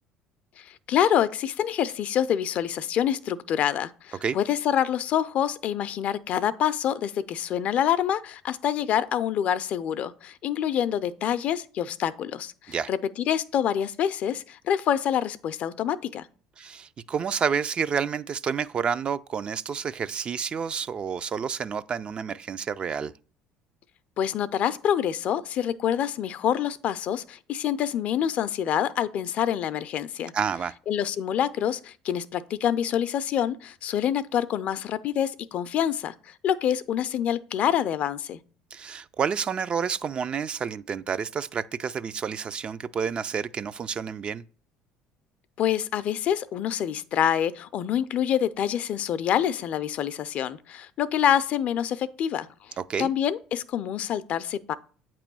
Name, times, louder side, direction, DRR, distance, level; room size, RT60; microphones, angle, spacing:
voice 1, 0.6-16.3 24.2-30.3 30.9-38.4 45.6-54.7, left 9 dB, 60° left, 0.4 m, -26 dB
voice 2, 16.6-23.1 30.3-30.7 38.7-44.4 52.8-53.1, right 6 dB, 40° right, 0.4 m, -29 dB
8.3 x 3.0 x 6.1 m
hypercardioid pair, 75°, 3 cm